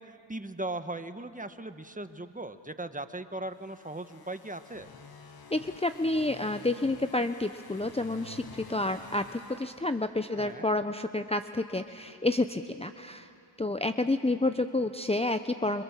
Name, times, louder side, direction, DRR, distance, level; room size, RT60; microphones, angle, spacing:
voice 1, 0.0-4.9 10.4-10.7, right 2 dB, 15° right, 10 dB, 1.5 m, -38 dB
sound 1, 3.5-10.4, left 4 dB, 45° left, 1.9 m, -50 dB
voice 2, 5.5-13.3 13.6-15.8, left 2 dB, 10° left, 9 dB, 0.9 m, -29 dB
28.5 x 25.5 x 7.6 m, 2.6 s
cardioid pair, 50°, 49 cm